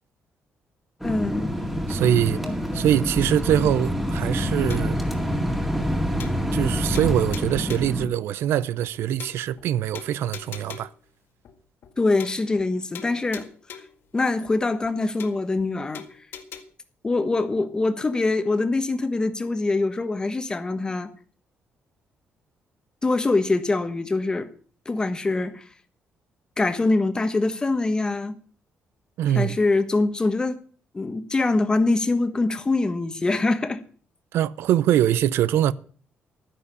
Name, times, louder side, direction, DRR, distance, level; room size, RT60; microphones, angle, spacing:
voice 1, 1.0-1.5 2.4-2.9 12.0-13.5 14.1-16.0 17.0-21.1 23.0-24.5 24.8-25.6 26.6-28.4 29.3-30.6 30.9-33.8, left 3 dB, 20° left, 1.3 m, -24 dB
sound 1, 1.0-8.1, equal, 5° right, 2.1 m, -26 dB
voice 2, 1.9-2.4 2.7-5.0 6.5-10.9 29.2-29.6 34.3-35.7, right 11 dB, 85° right, 0.6 m, -23 dB
sound 2, 4.7-5.0 5.4-5.5 5.8-5.9 6.2-6.7 6.9-8.0 8.4-8.5 8.8-8.9 9.2-9.7 9.9-11.0 11.4-11.5 11.8-11.9 12.2-12.7 12.9-14.0 14.4-14.5 14.8-14.9 15.2-15.7 15.9-16.6, left 7 dB, 65° left, 1.8 m, -41 dB
12.5 x 9.9 x 6.8 m
cardioid pair, 145°, 4 cm